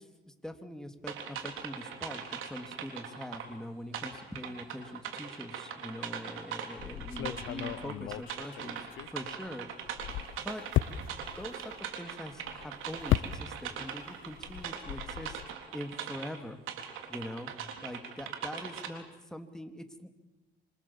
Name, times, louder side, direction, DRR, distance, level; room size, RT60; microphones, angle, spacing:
voice 1, 0.0-10.1 10.4-10.7 11.4-15.4 15.7-16.6 17.1-17.5 17.8-20.2, left 1 dB, 5° left, 7 dB, 2.7 m, -43 dB
sound 1, 1.1-3.5 3.9-16.4 16.7-18.9, right 8 dB, 85° right, 3.6 m, -41 dB
sound 2, 6.8-9.5 9.8-13.9 14.1-15.4, left 14 dB, 85° left, 0.9 m, -35 dB
27.5 x 25.0 x 7.4 m, 1.0 s
cardioid pair, 90°, 20 cm